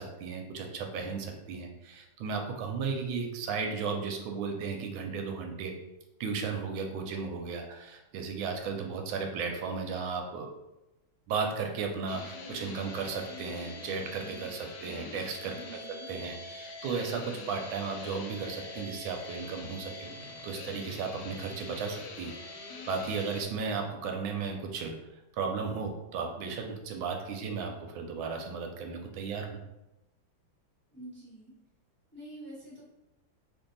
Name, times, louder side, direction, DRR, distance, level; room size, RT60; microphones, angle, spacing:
voice 1, 0.0-5.7 6.2-10.5 11.3-15.5 16.1-22.6 22.9-25.0 25.4-29.6, right 5 dB, 85° right, 3 dB, 1.4 m, -35 dB
sound 1, 12.1-23.4, left 3 dB, 75° left, 1.1 m, -44 dB
voice 2, 15.6-16.1 30.9-31.5 32.1-32.8, right 1 dB, 10° left, -8 dB, 0.7 m, -47 dB
3.2 x 2.6 x 3.8 m, 0.95 s
omnidirectional pair, 2.2 m